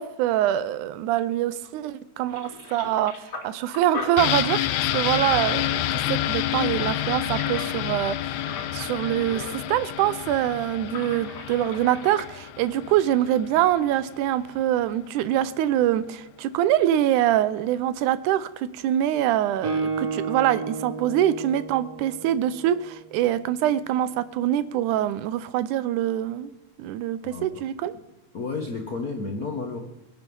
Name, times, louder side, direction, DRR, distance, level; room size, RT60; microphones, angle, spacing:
voice 1, 0.0-4.7 4.9-8.2 8.7-26.5 26.8-28.0, right 12 dB, 85° right, 15 dB, 2.1 m, -24 dB
sound 1, 1.6-1.9 2.2-9.8 10.1-10.2 10.8-12.3, left 3 dB, 35° left, 2.4 m, -40 dB
sound 2, 4.2-13.8 14.1-14.2, left 13 dB, 85° left, 2.1 m, -28 dB
Guitar, 19.6-23.3, right 4 dB, 55° right, 2.9 m, -32 dB
voice 2, 27.2-27.6 28.3-29.8, left 4 dB, 65° left, 2 dB, 0.9 m, -32 dB
22.0 x 8.0 x 5.4 m, 0.94 s
omnidirectional pair, 3.5 m